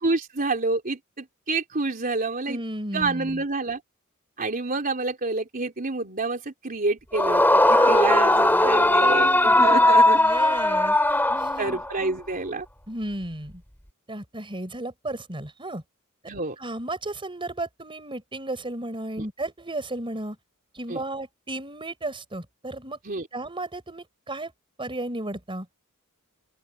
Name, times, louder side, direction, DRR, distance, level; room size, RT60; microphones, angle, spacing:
voice 1, 0.0-2.6 2.9-3.8 4.4-10.2 11.6-12.7 16.3-16.6 19.2-19.3 20.9-21.0 23.0-23.3, right 3 dB, 40° right, 3.8 m, -28 dB
voice 2, 2.5-3.4 7.6-11.0 11.3-11.8 12.9-13.6 14.1-15.8 16.2-20.4 20.7-23.0 23.3-24.5 24.8-25.7, right 2 dB, 25° right, 4.7 m, -34 dB
Yell / Screaming, 7.1-12.0, left 1 dB, 10° left, 2.6 m, -19 dB
head